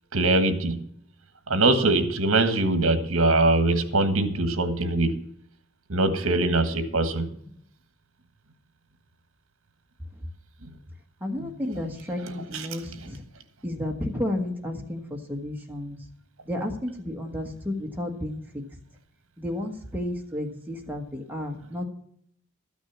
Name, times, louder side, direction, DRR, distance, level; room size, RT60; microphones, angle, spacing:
voice 1, 0.1-0.8 1.5-5.1 5.9-7.3 11.4-11.5 12.5-12.7, right 2 dB, 70° right, 9 dB, 1.4 m, -22 dB
voice 2, 11.2-13.2 13.6-16.0 16.5-18.4 19.4-21.8, left 1 dB, 10° right, 1 dB, 1.3 m, -32 dB
13.0 x 6.2 x 7.2 m, 0.69 s
head